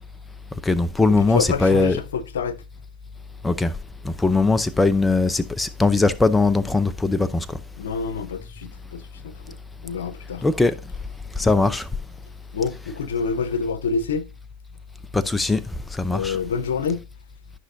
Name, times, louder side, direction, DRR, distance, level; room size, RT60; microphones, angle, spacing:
voice 1, 0.6-2.0 3.4-3.7 4.0-7.6 10.4-10.7 11.4-11.9 15.1-15.6 15.9-16.4, left 3 dB, 10° left, 0.7 m, -20 dB
voice 2, 1.3-2.6 7.8-9.6 9.8-10.5 11.4-11.7 12.5-14.3 16.1-17.0, left 5 dB, 80° left, 0.9 m, -27 dB
12.5 x 5.6 x 2.7 m
hypercardioid pair, 100°, 0 cm